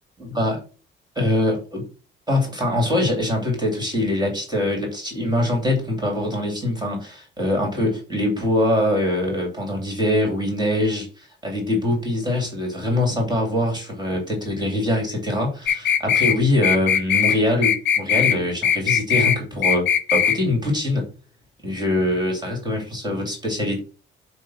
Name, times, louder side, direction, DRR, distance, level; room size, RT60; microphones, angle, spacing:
voice 1, 0.2-0.6 1.2-1.8 2.3-19.8 20.1-21.1 21.6-23.8, left 1 dB, 20° right, 1 dB, 2.7 m, -23 dB
sound 1, 15.7-16.4 16.6-17.4 17.6-18.4 18.6-19.4 19.6-20.4, left 8 dB, 60° left, 0.6 m, -19 dB
7.4 x 2.7 x 5.6 m, 0.36 s
cardioid pair, 90°, 20 cm